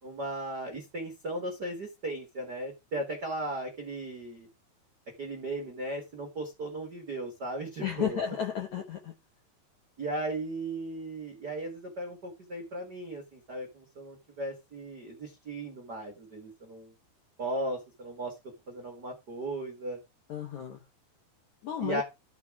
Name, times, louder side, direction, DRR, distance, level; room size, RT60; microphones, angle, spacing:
voice 1, 0.0-4.5 5.2-8.2 10.0-16.9 17.4-18.3 18.7-20.0 21.8-22.0, right 2 dB, 85° right, 0.9 m, -36 dB
voice 2, 7.8-9.1 20.3-20.8 21.6-22.0, left 9 dB, 75° left, 1.7 m, -33 dB
13.5 x 4.9 x 4.8 m
omnidirectional pair, 5.3 m